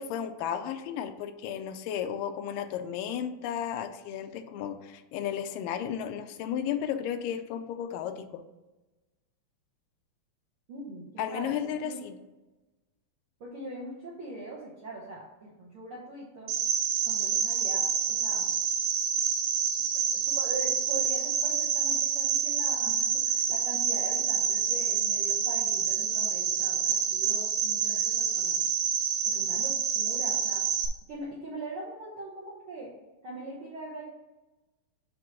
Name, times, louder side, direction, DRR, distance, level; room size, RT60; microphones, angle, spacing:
voice 1, 0.0-8.4 11.2-12.2, left 9 dB, 85° left, 8 dB, 2.2 m, -34 dB
voice 2, 10.7-12.0 13.4-16.5 17.0-18.5 20.1-28.6 29.2-30.6 31.1-32.9 33.2-34.1, right 2 dB, 65° right, -5 dB, 1.3 m, -41 dB
Cricket, 16.5-30.9, right 7 dB, 85° right, 2.4 m, -27 dB
7.7 x 3.1 x 6.0 m, 1.1 s
omnidirectional pair, 3.9 m